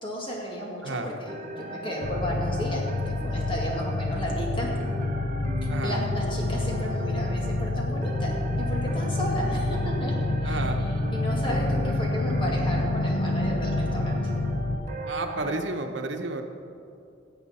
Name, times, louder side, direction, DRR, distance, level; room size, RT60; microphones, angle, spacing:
voice 1, 0.0-4.7 5.8-14.3, equal, 30° left, -3 dB, 2.0 m, -34 dB
sound 1, 1.3-15.6, equal, 40° right, 1.0 m, -37 dB
sound 2, 2.0-14.8, left 2 dB, 60° left, 0.7 m, -28 dB
voice 2, 5.7-6.0 10.4-10.8 15.1-16.4, right 2 dB, 75° right, 5 dB, 1.0 m, -31 dB
17.5 x 7.9 x 4.3 m, 2.5 s
head